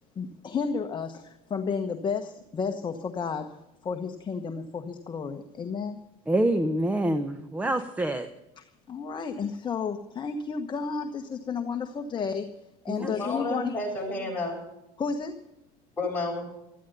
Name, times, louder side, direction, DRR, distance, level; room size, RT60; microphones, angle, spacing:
voice 1, 0.2-3.6 3.8-6.0 8.6-12.5 12.8-13.8 15.0-15.4, left 5 dB, 25° left, 6 dB, 1.2 m, -32 dB
voice 2, 6.3-8.3 12.9-13.1, right 1 dB, 10° right, 10 dB, 0.9 m, -26 dB
voice 3, 13.0-14.5 16.0-16.4, left 2 dB, 10° left, -2 dB, 7.9 m, -31 dB
15.0 x 13.5 x 5.4 m, 0.91 s
supercardioid pair, 115°, 17 cm